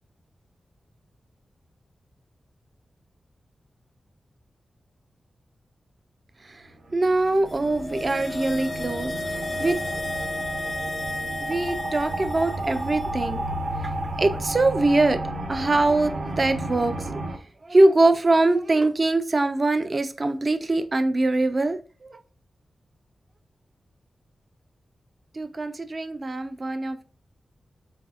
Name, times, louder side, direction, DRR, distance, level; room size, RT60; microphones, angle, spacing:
sound 1, 6.7-17.4, right 1 dB, 85° right, 0.8 m, -32 dB
voice 1, 6.9-10.0 11.4-13.4 13.8-13.9 14.2-17.2 17.6-22.2 25.3-27.0, right 2 dB, 35° right, 0.4 m, -23 dB
sound 2, 7.6-13.0 13.3-13.4, left 2 dB, 40° left, 0.3 m, -33 dB
4.0 x 4.0 x 2.4 m
wide cardioid pair, 145°, 0 cm